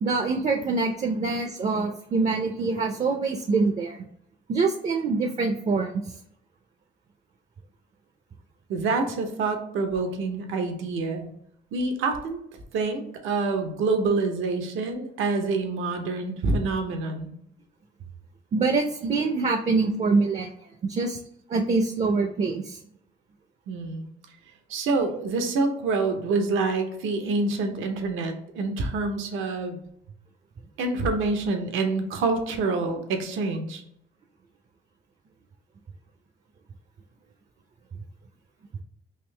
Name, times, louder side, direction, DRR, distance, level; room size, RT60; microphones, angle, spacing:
voice 1, 0.0-4.0 4.5-5.9 18.5-20.5 20.8-21.2 21.5-22.8, right 4 dB, 35° right, 4 dB, 0.4 m, -25 dB
voice 2, 8.7-11.3 11.7-12.4 12.7-17.3 23.7-24.1 24.7-29.8 30.8-33.8, right 3 dB, 85° right, 5 dB, 0.7 m, -27 dB
3.6 x 2.7 x 3.2 m, 0.71 s
cardioid pair, 90°, 20 cm